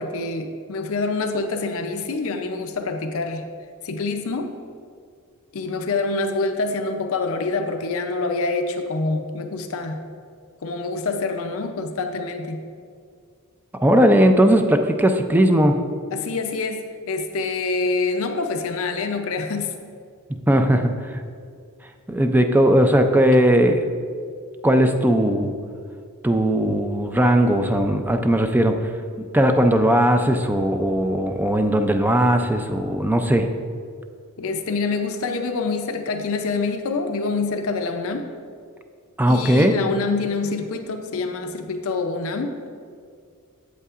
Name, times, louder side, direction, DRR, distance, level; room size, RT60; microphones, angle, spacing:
voice 1, 0.0-3.5 3.8-4.5 5.5-10.0 10.6-12.6 16.1-19.7 34.4-38.3 39.3-42.6, left 3 dB, 65° left, 5 dB, 0.5 m, -26 dB
voice 2, 13.8-15.8 20.3-21.2 22.1-23.9 24.6-25.5 26.2-28.9 29.3-33.5 39.2-39.8, equal, 10° right, 6 dB, 0.3 m, -18 dB
8.2 x 7.9 x 2.4 m, 2.2 s
head